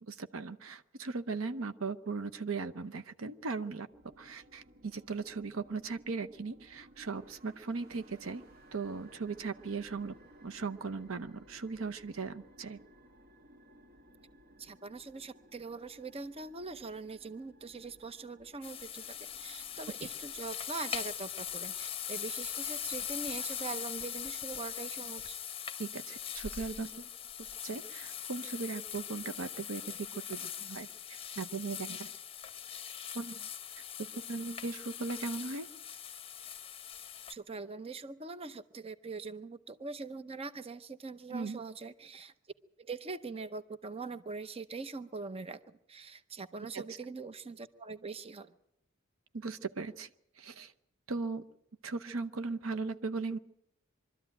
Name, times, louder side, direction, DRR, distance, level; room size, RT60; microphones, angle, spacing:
voice 1, 0.0-3.9 4.2-8.4 8.7-10.1 10.4-12.8 25.8-27.1 27.6-32.1 33.1-33.5 34.0-35.7 41.3-41.6 46.7-46.8 49.3-50.1 50.4-50.7 51.1-51.4 51.8-53.4, right 4 dB, 80° right, 10 dB, 0.8 m, -38 dB
sound 1, 3.9-20.6, equal, 50° right, 1.8 m, -59 dB
voice 2, 14.6-25.4 37.3-42.3 42.8-48.5, right 4 dB, 30° right, 13 dB, 0.7 m, -42 dB
sound 2, 18.6-37.3, left 9 dB, 30° left, 0.9 m, -41 dB
23.0 x 13.0 x 9.0 m, 0.77 s
head